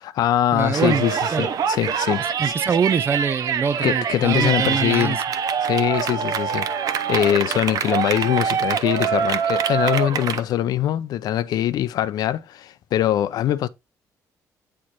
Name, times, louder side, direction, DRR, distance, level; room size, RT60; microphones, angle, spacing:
voice 1, 0.0-2.5 3.8-5.2 5.6-6.7 7.1-13.7, left 12 dB, 75° left, 0.5 m, -22 dB
voice 2, 0.5-1.5 2.4-5.2, right 6 dB, 35° right, 0.4 m, -24 dB
Yell, 0.7-10.4, right 7 dB, 65° right, 0.7 m, -24 dB
8.5 x 4.5 x 3.0 m
cardioid pair, 130°, 7 cm